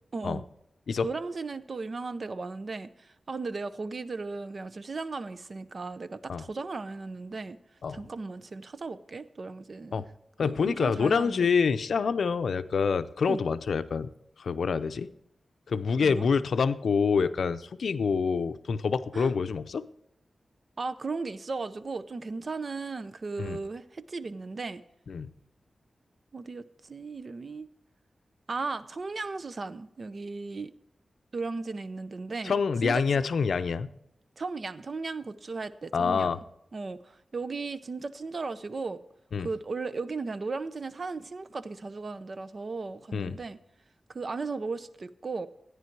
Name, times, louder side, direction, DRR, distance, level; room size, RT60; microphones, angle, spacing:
voice 1, 0.1-0.4 1.0-7.6 7.9-10.0 10.4-11.5 13.3-13.4 15.9-16.3 19.1-19.3 20.8-24.8 26.3-27.7 28.5-30.7 31.3-32.5 32.8-33.0 34.4-36.4 36.7-39.0 39.4-43.6 44.1-45.5, right 3 dB, 50° right, 0.6 m, -36 dB
voice 2, 10.4-14.1 14.4-15.1 15.7-19.8 23.4-23.6 25.1-25.3 32.4-33.9 35.9-36.4 39.3-39.5 43.1-43.4, left 5 dB, 85° left, 0.5 m, -26 dB
14.0 x 9.7 x 4.6 m
wide cardioid pair, 105°, 0 cm